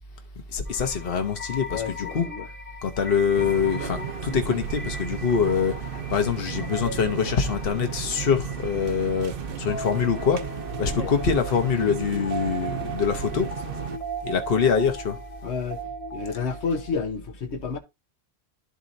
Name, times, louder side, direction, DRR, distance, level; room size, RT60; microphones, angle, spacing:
voice 1, 0.5-2.3 2.8-10.4 10.8-13.5 14.2-15.2, left 6 dB, 60° left, 1.3 m, -24 dB
sound 1, 0.7-16.9, right 1 dB, 35° left, 1.3 m, -38 dB
voice 2, 1.7-2.5 10.9-11.1 15.4-15.8 16.1-17.8, left 5 dB, 90° left, 1.3 m, -30 dB
sound 2, 3.3-14.0, right 9 dB, 60° right, 0.9 m, -34 dB
12.5 x 4.2 x 2.6 m
omnidirectional pair, 1.1 m